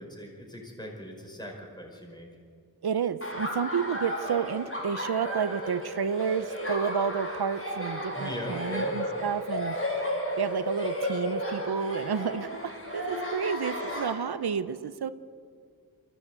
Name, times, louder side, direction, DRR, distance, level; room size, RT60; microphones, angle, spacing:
voice 1, 0.0-2.3 8.1-9.0, equal, 10° left, 0 dB, 5.0 m, -40 dB
voice 2, 2.8-9.7 10.4-15.1, right 7 dB, 80° right, 13 dB, 0.8 m, -30 dB
Laughter, 3.2-14.1, equal, 35° left, 6.8 m, -33 dB
24.0 x 15.5 x 8.2 m, 2.1 s
wide cardioid pair, 70°, 38 cm